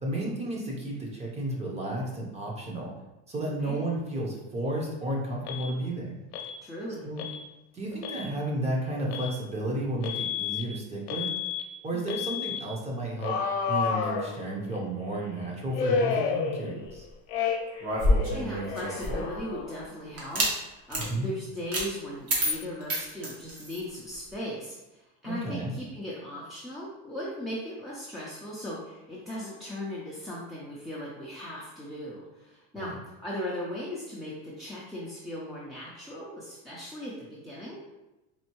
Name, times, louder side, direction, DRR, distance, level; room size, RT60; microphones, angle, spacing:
voice 1, 0.0-2.9 3.3-6.2 7.0-7.2 7.7-11.3 11.8-13.4 13.7-17.0 21.1-21.3 25.2-25.7 32.7-32.9, right 1 dB, 20° right, -2 dB, 0.8 m, -32 dB
Alarm, 5.5-5.7 6.3-6.6 7.2-7.4 7.9-8.3 9.1-9.3 10.0-10.6 11.1-11.6 12.1-12.6 13.2-14.8 15.7-16.9 17.3-17.8 18.1-19.8, left 6 dB, 85° left, 0.7 m, -31 dB
voice 2, 6.6-7.0 11.9-12.0 18.3-37.8, left 1 dB, ahead, -7 dB, 0.5 m, -38 dB
sound 1, 17.8-19.4 20.2-20.5 20.9-21.1 21.7-21.9 22.3-23.8, equal, 45° right, 1.1 m, -27 dB
4.3 x 2.6 x 3.0 m, 0.99 s
cardioid pair, 140°, 32 cm